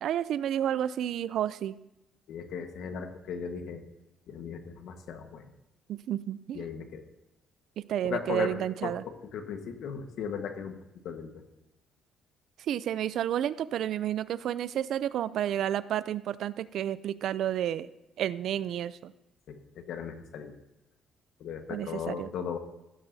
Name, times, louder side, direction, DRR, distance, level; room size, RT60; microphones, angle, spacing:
voice 1, 0.0-1.8 5.9-6.6 7.8-9.0 12.6-17.9 18.2-19.1 21.7-22.3, right 11 dB, 60° right, 17 dB, 0.4 m, -31 dB
voice 2, 2.3-3.8 4.3-5.5 6.5-7.0 8.0-10.7 11.0-11.4 19.5-20.5 21.4-22.6, left 7 dB, 70° left, 6 dB, 1.3 m, -37 dB
15.5 x 12.5 x 2.7 m, 0.91 s
cardioid pair, 155°, 0 cm